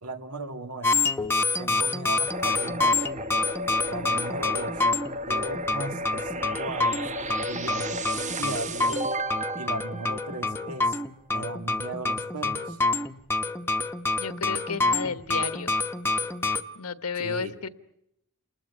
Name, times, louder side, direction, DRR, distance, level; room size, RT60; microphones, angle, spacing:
voice 1, 0.0-1.0 1.6-3.1 3.9-4.8 5.3-9.0 9.6-11.0 11.3-12.8 17.2-17.5, right 2 dB, 90° right, 7 dB, 2.0 m, -37 dB
sound 1, 0.8-16.6, left 3 dB, 10° left, 0.9 m, -27 dB
sound 2, 2.3-10.9, right 1 dB, 35° right, 1.1 m, -34 dB
voice 2, 14.2-15.7 16.7-17.7, left 5 dB, 85° left, 12 dB, 1.4 m, -32 dB
29.0 x 20.0 x 8.2 m, 0.80 s
head